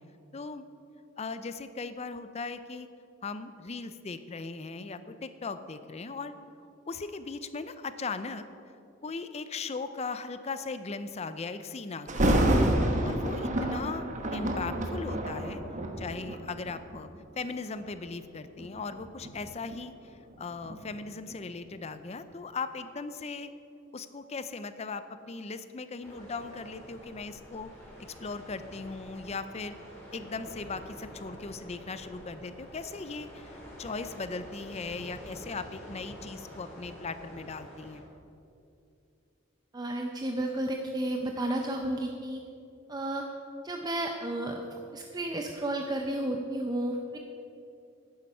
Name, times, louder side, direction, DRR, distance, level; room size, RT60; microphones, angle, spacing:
voice 1, 0.3-0.6 1.2-2.9 3.2-6.3 6.9-8.4 9.0-12.4 13.0-14.0 14.3-15.6 16.0-17.1 17.4-23.5 23.9-27.7 28.2-29.8 30.1-38.0, left 4 dB, 30° left, 11 dB, 0.5 m, -38 dB
Thunder, 12.1-17.1 17.7-17.9 18.6-21.4 21.7-21.8, right 1 dB, 35° right, 1.1 m, -29 dB
sound 1, 26.0-38.0, equal, 10° left, 3.3 m, -47 dB
voice 2, 39.7-42.4 42.9-43.2 43.6-44.6 44.9-47.2, right 1 dB, 20° right, 2 dB, 0.6 m, -32 dB
11.0 x 9.5 x 5.5 m, 2.6 s
head